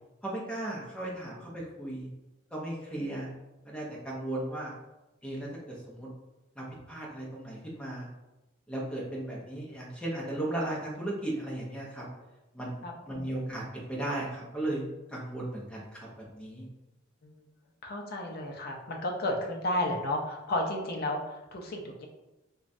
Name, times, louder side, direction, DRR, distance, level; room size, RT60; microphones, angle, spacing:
voice 1, 0.2-2.1 2.5-3.3 3.6-4.7 5.2-6.1 6.6-8.1 8.7-12.1 12.5-16.7, right 1 dB, 5° left, -5 dB, 0.6 m, -36 dB
voice 2, 17.8-22.1, left 1 dB, 50° left, 1 dB, 0.5 m, -32 dB
3.0 x 2.2 x 2.5 m, 0.98 s
head